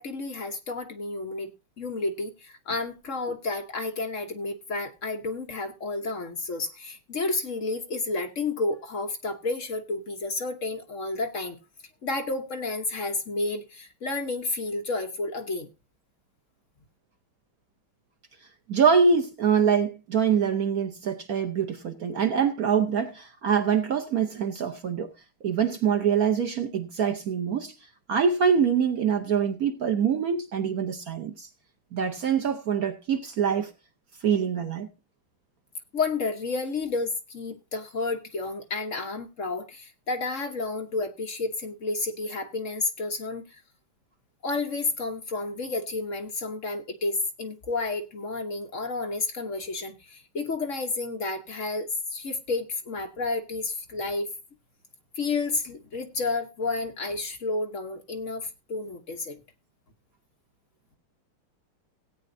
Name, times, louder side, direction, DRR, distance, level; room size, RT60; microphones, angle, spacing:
voice 1, 0.0-1.5 1.8-11.6 12.0-15.7 35.9-43.6 44.4-54.3 55.1-59.4, left 3 dB, 45° left, 1.1 m, -31 dB
voice 2, 18.7-25.1 25.4-27.7 28.1-31.5 31.9-33.7 34.2-34.9, right 6 dB, 55° right, 1.1 m, -24 dB
17.5 x 8.7 x 2.6 m
omnidirectional pair, 2.3 m